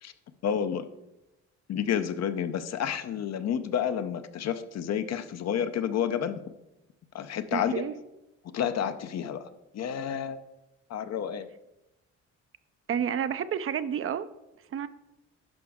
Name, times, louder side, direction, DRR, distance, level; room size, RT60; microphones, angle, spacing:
voice 1, 0.4-0.9 1.7-6.4 7.1-7.7 8.5-9.5 9.7-10.4 10.9-11.5, left 8 dB, 60° left, 10 dB, 0.6 m, -30 dB
voice 2, 7.5-7.9 12.9-14.3 14.7-14.9, right 8 dB, 45° right, 13 dB, 0.5 m, -30 dB
11.5 x 4.7 x 3.6 m, 0.94 s
cardioid pair, 90°, 30 cm